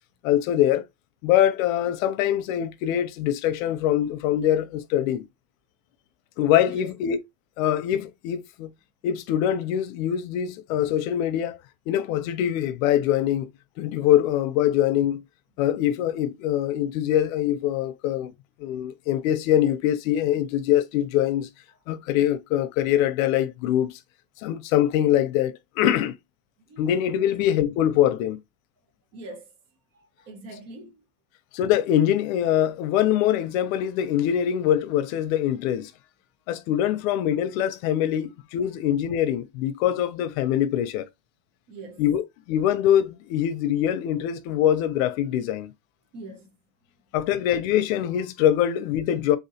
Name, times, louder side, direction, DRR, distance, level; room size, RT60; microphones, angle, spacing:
voice 1, 0.2-0.8 1.2-5.2 6.4-7.2 7.6-8.7 9.0-11.6 11.9-13.5 13.8-15.2 15.6-18.3 18.6-21.5 21.9-24.0 24.4-26.1 26.8-28.4 31.5-35.9 36.5-41.1 42.0-45.7 47.1-49.4, left 11 dB, 80° left, 0.6 m, -23 dB
voice 2, 29.1-29.5 29.9-31.0 41.7-42.0 46.1-46.5, right 2 dB, 45° right, 1.2 m, -42 dB
3.6 x 2.9 x 2.7 m
cardioid pair, 180°, 41 cm